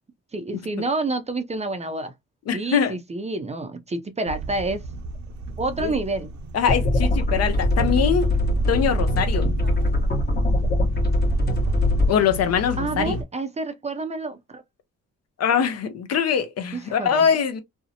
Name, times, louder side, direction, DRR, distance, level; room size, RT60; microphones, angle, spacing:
voice 1, 0.3-2.1 2.5-4.8 5.6-6.3 12.8-14.6 16.7-17.3, right 2 dB, 20° right, 0.5 m, -28 dB
voice 2, 2.5-3.0 5.8-5.9 6.5-8.3 8.7-9.5 12.1-13.2 15.4-17.6, left 7 dB, 55° left, 0.6 m, -22 dB
sound 1, 4.3-13.2, right 1 dB, 65° right, 0.6 m, -33 dB
sound 2, 6.7-12.1, left 1 dB, 35° left, 1.0 m, -22 dB
2.6 x 2.0 x 2.7 m
cardioid pair, 90°, 30 cm